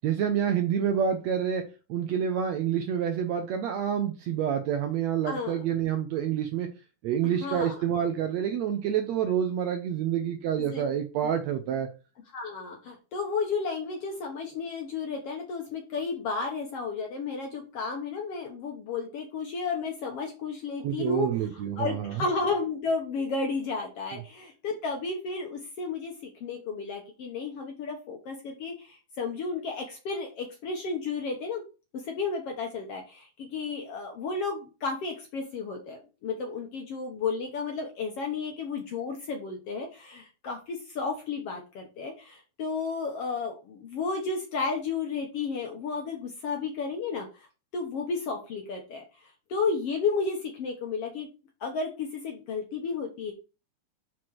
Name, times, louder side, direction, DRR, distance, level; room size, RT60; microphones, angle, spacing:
voice 1, 0.0-6.7 7.0-11.9 20.8-22.3, right 9 dB, 70° right, 5 dB, 1.7 m, -28 dB
voice 2, 5.2-5.6 7.4-7.8 10.6-10.8 12.3-21.3 21.8-31.6 32.0-47.3 47.7-49.0 49.5-51.3 51.6-53.3, left 4 dB, 60° left, 1 dB, 1.7 m, -32 dB
6.2 x 4.4 x 4.7 m, 0.32 s
omnidirectional pair, 3.8 m